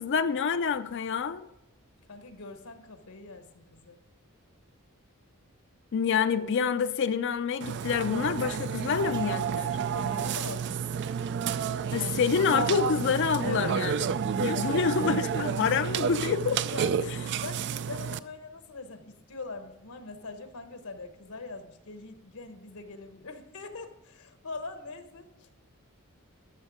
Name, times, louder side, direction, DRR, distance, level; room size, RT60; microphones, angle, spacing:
voice 1, 0.0-1.4 5.9-9.8 11.9-14.0 14.4-16.6, left 6 dB, 55° left, 10 dB, 0.4 m, -27 dB
voice 2, 2.1-4.0 9.9-10.9 13.4-13.8 16.7-25.5, left 3 dB, 80° left, 8 dB, 1.1 m, -42 dB
Burping eructation, 7.6-18.2, right 7 dB, 50° right, 0.4 m, -30 dB
13.0 x 6.5 x 5.0 m, 0.90 s
head